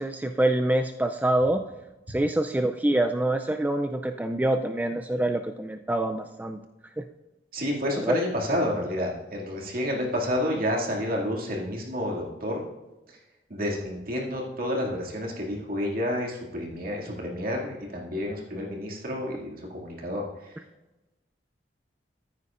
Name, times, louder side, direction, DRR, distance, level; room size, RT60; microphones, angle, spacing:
voice 1, 0.0-1.6 2.1-6.6 7.0-7.1 8.0-8.2, right 1 dB, 10° right, 6 dB, 0.3 m, -25 dB
voice 2, 7.5-12.7 13.5-20.5, left 1 dB, 55° right, -2 dB, 2.3 m, -30 dB
14.5 x 9.6 x 2.5 m, 1.1 s
head